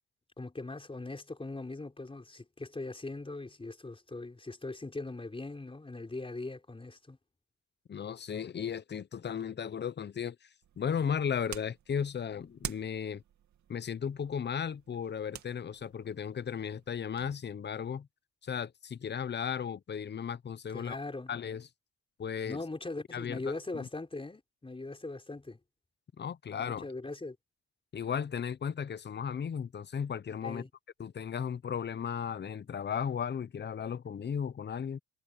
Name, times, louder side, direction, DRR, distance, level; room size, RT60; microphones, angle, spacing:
voice 1, 0.4-7.2 20.7-21.3 22.5-25.6 26.6-27.4 30.4-30.7, left 2 dB, 20° left, 4.7 m, -40 dB
voice 2, 7.9-10.5 10.8-13.2 13.7-18.1 18.4-21.0 21.3-21.7 22.2-22.6 23.1-23.9 26.2-26.9 27.9-30.6 31.0-35.0, left 7 dB, 35° left, 0.8 m, -35 dB
sound 1, 10.6-17.4, right 10 dB, 70° right, 2.5 m, -48 dB
cardioid pair, 90°, 30 cm